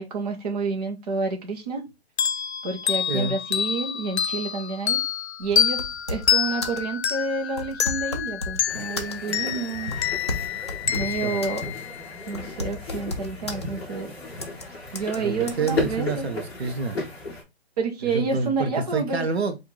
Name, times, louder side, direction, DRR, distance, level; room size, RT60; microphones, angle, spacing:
voice 1, 0.0-1.9 2.6-5.0 5.4-10.1 10.9-11.6 12.3-14.1 14.9-16.3 17.8-19.3, right 4 dB, 40° right, 1.0 m, -29 dB
sound 1, 2.2-12.5, left 8 dB, 80° left, 0.6 m, -27 dB
sound 2, 5.4-6.4 6.6-6.9 7.5-8.6 9.0-9.4 9.9-11.7 11.9-12.0 12.3-13.6 14.4-14.7 15.0-15.2 15.5-15.7, left 2 dB, 25° left, 0.4 m, -33 dB
sound 3, 8.7-17.4, left 3 dB, 10° left, 1.0 m, -35 dB
voice 2, 11.0-11.7 15.2-17.0 18.0-19.6, right 4 dB, 70° right, 1.0 m, -28 dB
4.6 x 2.7 x 3.7 m
hypercardioid pair, 170°, 32 cm